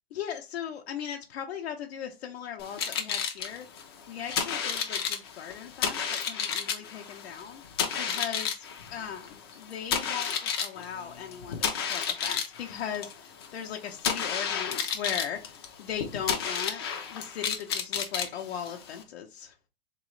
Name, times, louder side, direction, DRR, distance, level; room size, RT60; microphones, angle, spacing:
voice 1, 0.1-3.6 4.1-7.6 8.0-19.5, left 9 dB, 80° left, 0.7 m, -38 dB
sound 1, 2.6-19.0, left 7 dB, 25° left, 0.3 m, -32 dB
3.8 x 3.0 x 3.0 m
supercardioid pair, 170°, 31 cm